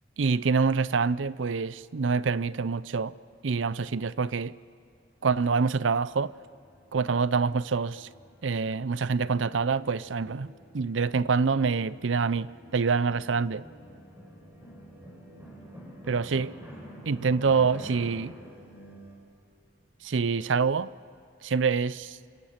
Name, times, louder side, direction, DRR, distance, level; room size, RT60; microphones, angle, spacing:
voice 1, 0.2-3.1 3.4-4.5 5.2-6.3 6.9-8.1 8.4-13.6 16.1-16.5 17.1-18.3 20.0-20.9 21.4-22.2, right 5 dB, 75° right, 0.6 m, -26 dB
sound 1, 6.4-19.2, equal, 10° right, 6.0 m, -49 dB
28.0 x 26.5 x 5.9 m
head